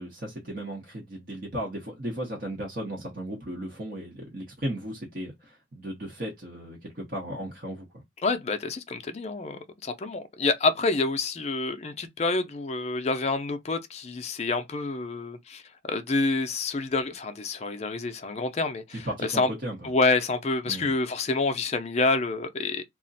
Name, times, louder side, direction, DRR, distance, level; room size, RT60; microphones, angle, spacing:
voice 1, 0.0-7.9 19.0-19.8 20.7-20.9, right 1 dB, 50° right, 0.8 m, -35 dB
voice 2, 8.2-19.5 19.8-22.8, left 3 dB, 35° left, 0.4 m, -28 dB
2.4 x 2.1 x 3.9 m
head